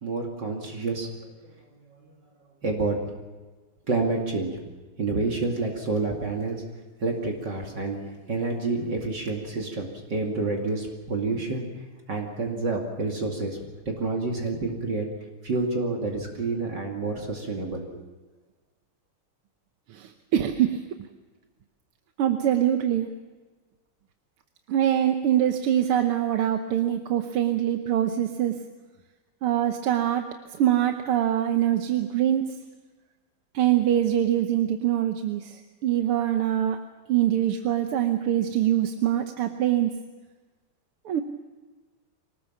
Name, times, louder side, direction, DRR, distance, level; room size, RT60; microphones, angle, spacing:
voice 1, 0.0-1.6 1.9-2.0 2.6-3.0 3.9-4.6 5.0-6.6 7.0-11.7 12.1-15.1 15.4-18.0, right 3 dB, 50° right, 1 dB, 3.0 m, -29 dB
voice 2, 19.9-20.8 22.2-23.1 24.7-28.5 29.4-30.3 30.6-32.6 33.5-36.8 37.1-39.9 41.1-41.2, right 11 dB, 80° right, 6 dB, 1.9 m, -24 dB
25.0 x 19.0 x 7.3 m, 1.3 s
omnidirectional pair, 2.4 m